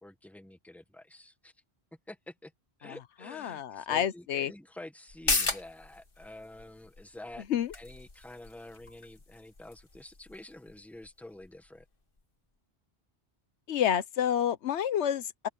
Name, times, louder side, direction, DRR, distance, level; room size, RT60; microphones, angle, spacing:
voice 1, 0.0-1.5 2.1-2.5 2.8-7.5 7.7-11.8, left 1 dB, ahead, 1.3 m, -48 dB
voice 2, 3.3-4.5 7.5-7.7 13.7-15.5, left 9 dB, 85° left, 1.0 m, -29 dB
sound 1, 5.1-12.2 12.6-12.7, left 3 dB, 50° left, 2.1 m, -37 dB
open air
omnidirectional pair, 1.1 m